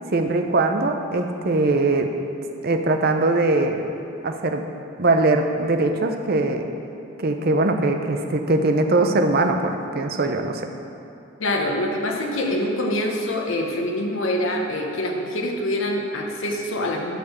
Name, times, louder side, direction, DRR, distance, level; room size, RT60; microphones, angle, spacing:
voice 1, 0.1-2.1 2.6-3.8 4.2-4.6 5.0-6.6 7.2-10.7, right 2 dB, 45° right, 5 dB, 0.6 m, -21 dB
voice 2, 11.4-17.2, left 1 dB, 70° left, 0 dB, 1.0 m, -25 dB
11.5 x 4.6 x 6.8 m, 2.7 s
head